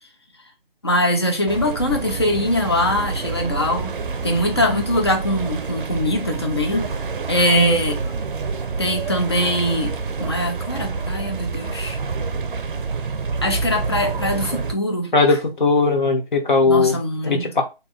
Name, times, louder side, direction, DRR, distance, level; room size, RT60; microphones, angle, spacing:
voice 1, 0.8-4.0 4.2-6.9 7.3-8.2 8.8-12.0 13.4-15.1 16.7-17.6, left 1 dB, 30° left, 0.4 m, -22 dB
sound 1, 1.5-14.7, right 4 dB, 60° right, 0.5 m, -27 dB
voice 2, 15.1-17.0 17.3-17.6, left 3 dB, 55° left, 0.9 m, -18 dB
2.7 x 2.3 x 3.8 m
figure-of-eight pair, 150°, 30 cm